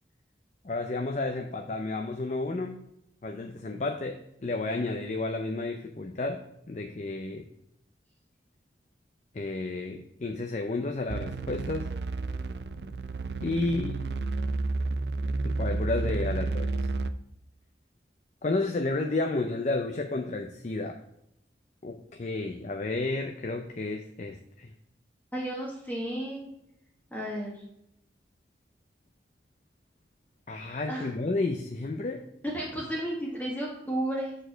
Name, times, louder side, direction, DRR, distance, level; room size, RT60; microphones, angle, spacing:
voice 1, 0.6-2.8 3.2-6.4 6.7-7.4 9.3-11.9 13.4-14.0 15.4-16.7 18.4-21.0 21.8-24.7 30.5-32.2, left 2 dB, 40° left, 4 dB, 0.5 m, -31 dB
sound 1, 11.1-17.1, right 3 dB, 70° right, 0.4 m, -31 dB
voice 2, 25.3-26.4 27.1-27.5 30.9-31.1 32.4-34.4, right 1 dB, 10° left, -4 dB, 1.1 m, -32 dB
7.0 x 4.5 x 4.5 m, 0.79 s
head